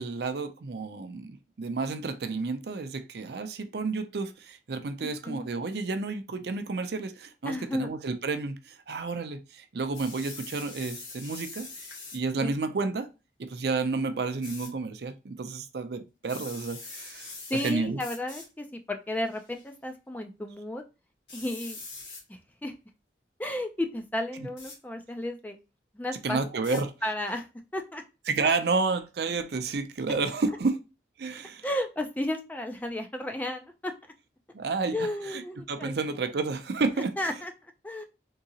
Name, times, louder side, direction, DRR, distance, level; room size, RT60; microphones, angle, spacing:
voice 1, 0.0-11.7 12.1-13.1 13.4-17.4 17.6-18.0 24.4-24.5 26.2-26.9 28.3-30.8 31.2-31.6 34.5-35.4 35.7-37.1, right 4 dB, 65° right, 0.5 m, -31 dB
voice 2, 5.0-5.5 7.5-7.9 12.4-12.5 17.5-20.8 21.3-21.8 22.3-22.7 23.4-25.6 25.9-26.4 26.7-27.5 27.7-28.0 31.6-33.9 34.9-35.9 37.2-38.0, left 1 dB, 10° left, 0.4 m, -33 dB
sound 1, 9.9-12.2 14.4-14.7 16.2-17.7 18.0-18.5 19.3-19.6 21.3-22.2 24.6-24.8 26.6-26.8, left 3 dB, 75° left, 1.6 m, -43 dB
3.7 x 2.8 x 2.8 m
head